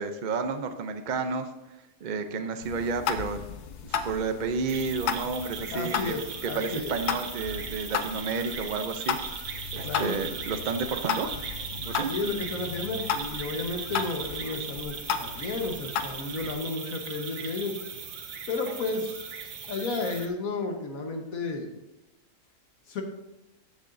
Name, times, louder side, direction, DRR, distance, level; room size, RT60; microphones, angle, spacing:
voice 1, 0.0-1.5 2.0-3.4 3.8-6.1 6.4-9.2 9.5-11.3 11.7-12.1, right 4 dB, 55° right, 7 dB, 0.5 m, -31 dB
sound 1, 2.6-16.5, left 7 dB, 90° left, 1.2 m, -35 dB
sound 2, 4.7-20.3, right 6 dB, 80° right, 1.5 m, -38 dB
voice 2, 5.7-7.0 9.8-10.2 12.1-17.8 18.5-19.2 19.7-21.7 22.9-23.0, left 3 dB, 65° left, 3 dB, 1.6 m, -32 dB
13.0 x 7.8 x 2.6 m, 0.96 s
omnidirectional pair, 1.6 m